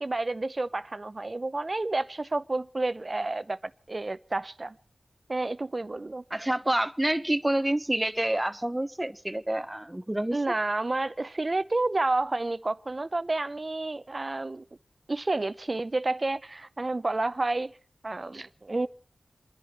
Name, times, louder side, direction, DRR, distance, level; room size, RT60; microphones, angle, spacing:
voice 1, 0.0-3.6 3.9-4.8 5.3-6.2 10.3-14.6 15.1-17.7 18.0-18.9, right 2 dB, 45° right, 0.8 m, -30 dB
voice 2, 6.3-10.4, right 1 dB, 20° right, 1.1 m, -28 dB
28.0 x 10.5 x 4.4 m
cardioid pair, 40°, 0 cm